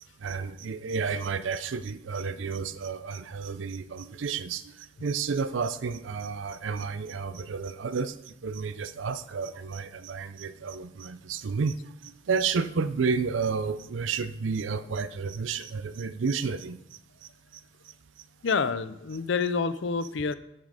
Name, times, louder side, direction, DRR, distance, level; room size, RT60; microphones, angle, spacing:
voice 1, 0.2-17.9 18.5-18.6, right 5 dB, 85° right, 13 dB, 0.5 m, -31 dB
voice 2, 18.4-20.3, left 5 dB, 75° left, 13 dB, 0.5 m, -28 dB
7.4 x 7.3 x 4.9 m, 0.82 s
head